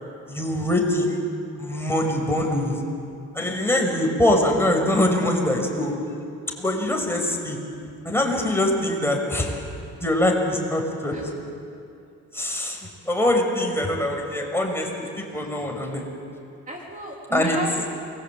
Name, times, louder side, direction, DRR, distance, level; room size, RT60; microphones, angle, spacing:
voice 1, 0.3-1.2 1.6-2.8 3.3-5.9 6.6-7.6 8.0-9.6 10.0-11.2 12.3-14.9 15.2-16.0 17.3-17.6, left 1 dB, 10° left, 1 dB, 6.3 m, -23 dB
voice 2, 15.0-15.7 16.7-17.9, right 1 dB, 25° right, -1 dB, 3.8 m, -33 dB
28.5 x 22.5 x 8.9 m, 2.5 s
cardioid pair, 90°, 30 cm